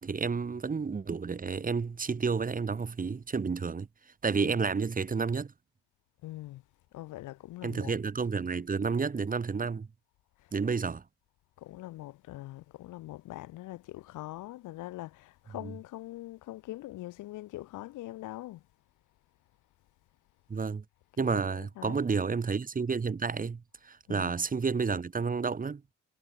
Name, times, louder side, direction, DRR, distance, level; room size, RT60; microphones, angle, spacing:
voice 1, 0.0-3.9 4.2-5.5 7.6-9.9 10.5-11.0 15.6-15.7 20.5-20.8 21.2-25.8, right 5 dB, 30° right, 1.3 m, -30 dB
voice 2, 6.2-6.6 6.9-7.9 11.6-18.6 21.2-21.9 24.1-24.3, left 16 dB, 85° left, 1.3 m, -43 dB
cardioid pair, 90°, 30 cm